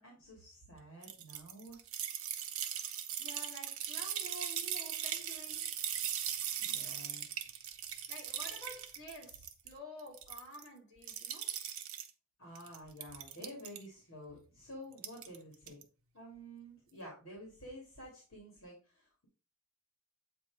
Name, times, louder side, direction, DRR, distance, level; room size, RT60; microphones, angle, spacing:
voice 1, 0.0-1.8 6.6-7.2 12.4-15.8 16.1-19.3, equal, 70° left, 2.4 m, -50 dB
sound 1, 1.0-9.7 10.0-10.7 11.0-12.1 12.6-13.8 14.9-15.4 15.7-15.8, right 10 dB, 80° right, 0.9 m, -39 dB
voice 2, 3.2-5.8 8.1-11.5, left 1 dB, 50° left, 3.5 m, -50 dB
8.4 x 3.0 x 4.7 m
head